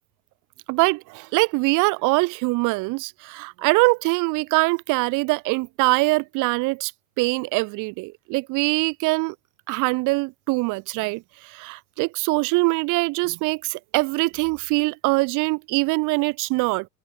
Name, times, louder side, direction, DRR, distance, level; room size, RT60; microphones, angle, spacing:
voice 1, 0.7-6.9 7.2-9.3 9.7-16.9, right 25 dB, 40° right, 0.5 m, -23 dB
hypercardioid pair, 90°, 48 cm